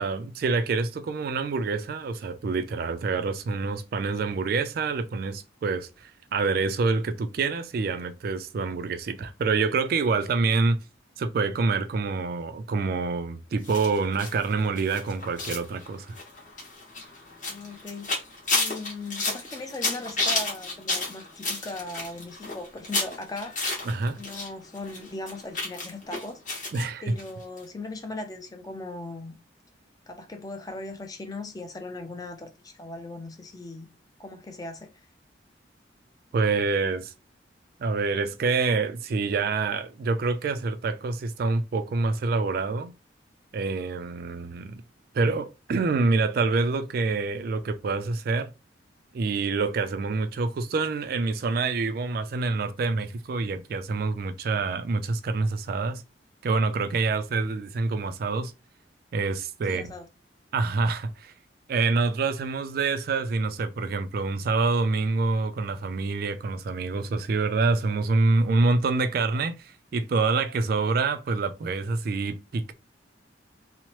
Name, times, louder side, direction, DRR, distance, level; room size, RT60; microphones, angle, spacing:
voice 1, 0.0-10.8 11.2-16.2 23.9-24.2 26.7-27.0 36.3-37.1 37.8-42.9 43.5-44.8 45.1-48.5 49.1-56.0 56.4-58.5 59.1-59.8 60.5-61.3 61.7-72.7, right 3 dB, 50° right, 0.3 m, -26 dB
sound 1, 13.6-24.5 24.7-26.8 27.2-27.3 27.6-27.7, left 3 dB, 45° left, 1.1 m, -31 dB
voice 2, 17.5-23.5 24.2-26.4 27.0-29.4 30.1-33.9 34.2-35.1 59.7-60.0, left 2 dB, 20° left, 0.4 m, -38 dB
3.0 x 2.0 x 2.8 m
head